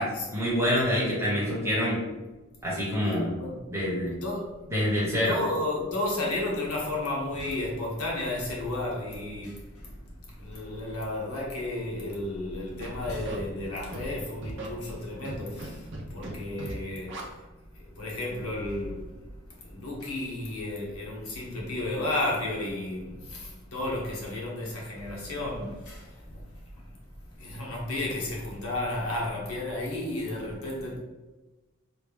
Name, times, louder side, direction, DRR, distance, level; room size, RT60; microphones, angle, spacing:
voice 1, 0.0-2.0 2.6-3.3 3.7-4.2 4.7-5.4, equal, 10° right, 1.2 m, -26 dB
voice 2, 4.2-4.6 5.2-9.9 10.2-17.2 17.7-19.2 19.5-26.4 26.7-26.9 27.3-31.0, left 1 dB, 80° left, 1.0 m, -33 dB
Scratching (performance technique), 12.8-13.4 13.9-14.1 14.4-14.7 15.2-15.7 15.9-16.3 16.6-16.7 17.1-17.2, right 2 dB, 55° right, 0.6 m, -37 dB
3.3 x 2.4 x 3.4 m
head